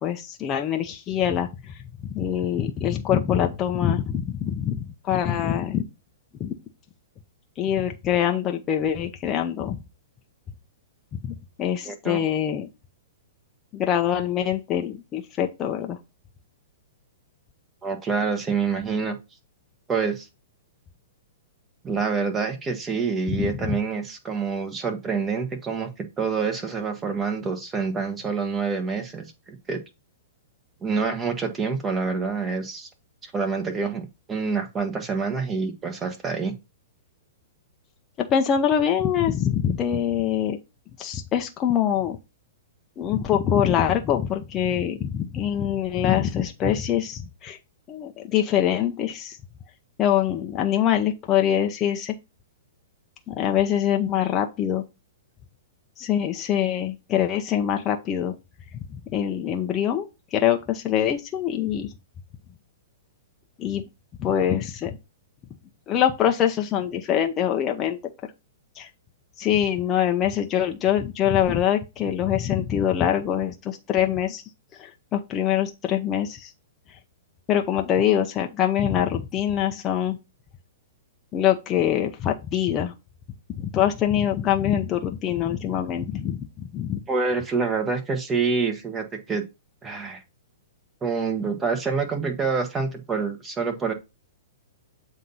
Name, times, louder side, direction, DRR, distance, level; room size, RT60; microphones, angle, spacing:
voice 1, 0.0-5.8 6.4-6.6 7.6-9.8 11.1-12.7 13.7-16.0 23.3-23.8 38.2-40.6 41.0-42.2 43.0-47.6 47.9-49.4 50.0-52.1 53.3-54.8 56.0-58.3 58.9-61.9 63.6-63.8 64.2-65.0 65.9-68.0 68.8-68.9 69.4-74.4 74.8-76.5 77.5-80.2 81.3-82.9 83.6-87.0, left 10 dB, 25° left, 0.7 m, -24 dB
voice 2, 11.8-12.2 17.8-19.2 19.9-20.3 21.8-29.8 30.8-32.9 33.2-36.5 87.1-89.4 89.8-90.2 91.0-93.9, right 5 dB, 15° right, 1.3 m, -27 dB
7.5 x 2.7 x 5.5 m
hypercardioid pair, 135°, 0 cm